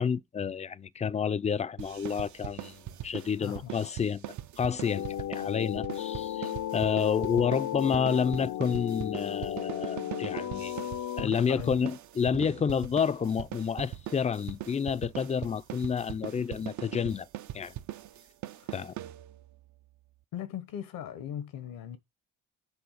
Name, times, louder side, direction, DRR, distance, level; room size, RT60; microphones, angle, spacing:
voice 1, 0.0-10.9 11.2-17.3 17.5-17.7 18.7-18.9, left 6 dB, 20° left, 0.4 m, -30 dB
sound 1, 1.8-19.6, right 13 dB, 60° right, 0.5 m, -41 dB
voice 2, 3.4-3.9 11.2-11.9 18.6-18.8 20.3-22.0, left 10 dB, 85° left, 1.1 m, -39 dB
sound 2, 4.9-11.3, left 12 dB, 65° left, 0.6 m, -34 dB
7.1 x 3.9 x 6.4 m
cardioid pair, 85°, 33 cm